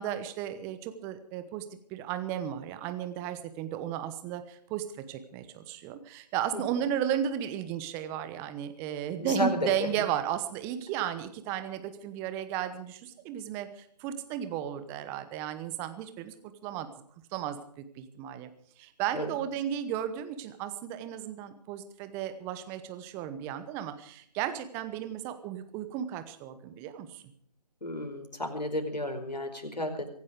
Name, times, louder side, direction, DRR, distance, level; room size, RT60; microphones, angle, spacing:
voice 1, 0.0-1.6 1.9-16.9 17.3-18.5 18.8-27.3, right 10 dB, 10° right, 10 dB, 1.0 m, -34 dB
voice 2, 9.2-9.9 19.1-19.3 27.8-30.1, left 1 dB, 85° left, 5 dB, 5.0 m, -32 dB
23.5 x 10.5 x 5.1 m, 0.64 s
figure-of-eight pair, 150°, 21 cm